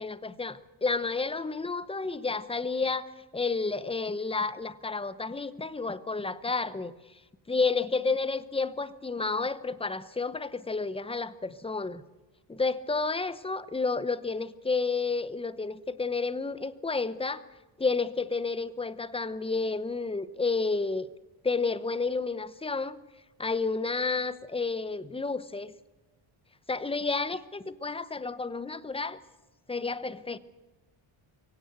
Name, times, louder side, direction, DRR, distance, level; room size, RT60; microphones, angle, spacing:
voice 1, 0.0-6.9 7.5-12.0 12.5-17.4 17.8-21.1 21.4-23.0 23.4-25.7 26.7-29.2 29.7-30.4, left 4 dB, 10° left, 15 dB, 0.8 m, -31 dB
24.0 x 17.0 x 8.1 m, 1.2 s
cardioid pair, 125°, 50 cm